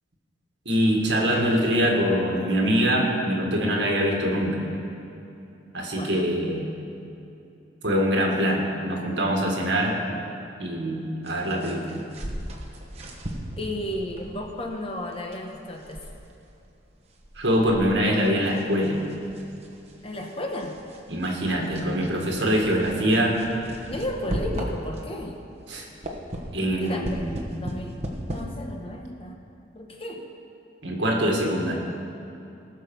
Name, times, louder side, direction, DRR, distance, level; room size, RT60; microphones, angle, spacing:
voice 1, 0.7-4.6 5.7-6.7 7.8-10.0 10.6-12.0 17.4-19.0 21.1-23.4 25.7-25.9 26.5-27.4 30.8-31.7, equal, 65° right, 0 dB, 1.9 m, -24 dB
voice 2, 5.9-6.3 13.6-16.0 20.0-20.8 23.9-25.4 26.8-27.1 27.6-29.4 29.7-30.3, left 1 dB, 30° left, 2 dB, 1.0 m, -33 dB
sound 1, 11.2-25.2 25.6-28.4, equal, 35° right, 1.2 m, -37 dB
18.5 x 6.5 x 5.5 m, 2.7 s
head